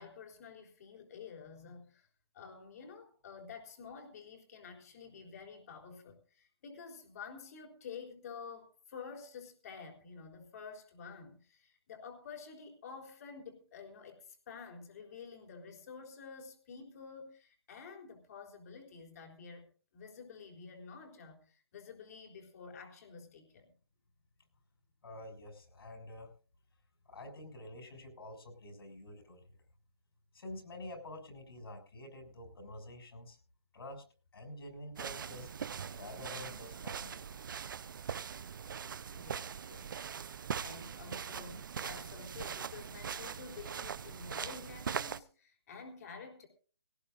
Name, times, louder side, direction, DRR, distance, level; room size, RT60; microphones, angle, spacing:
voice 1, 0.0-2.1 2.3-19.7 19.9-23.7 39.1-39.9 40.6-46.5, left 5 dB, 40° left, 2 dB, 3.9 m, -50 dB
voice 2, 25.0-26.3 27.0-29.4 30.3-33.4 33.7-34.1 34.3-35.5 35.9-37.4, left 1 dB, 70° left, 5 dB, 6.5 m, -48 dB
sound 1, 35.0-45.2, right 7 dB, 50° right, 0.7 m, -41 dB
19.5 x 18.5 x 2.6 m, 0.38 s
hypercardioid pair, 165°, 13 cm